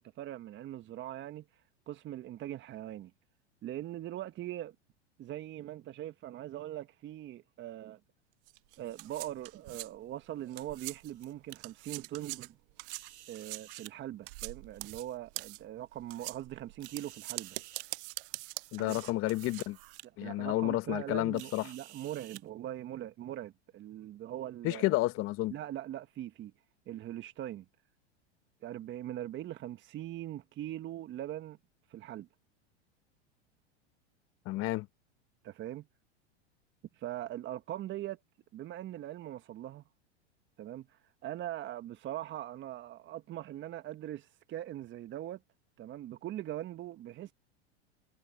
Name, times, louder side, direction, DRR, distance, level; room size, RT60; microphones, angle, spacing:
voice 1, 0.0-1.4 1.9-3.1 3.6-4.7 5.2-8.0 8.8-12.5 13.3-17.6 18.8-19.0 20.2-25.0 25.5-26.5 26.9-27.6 28.6-31.6 31.9-32.3 35.4-35.9 36.9-38.2 38.5-39.8 40.6-45.4 45.8-47.3, right 13 dB, 35° right, 1.4 m, -41 dB
sound 1, 8.5-11.3 11.6-20.0, right 25 dB, 55° right, 0.6 m, -44 dB
sound 2, 10.7-11.6 12.8-13.9 14.6-15.4 16.1-16.2 16.8-17.9 18.8-18.9 19.3-19.6 20.0-20.1 21.3-22.4, right 12 dB, 80° right, 1.5 m, -52 dB
voice 2, 18.7-19.8 20.2-21.6 24.6-25.5 34.4-34.9, left 18 dB, 40° left, 1.3 m, -31 dB
hypercardioid pair, 100°, 34 cm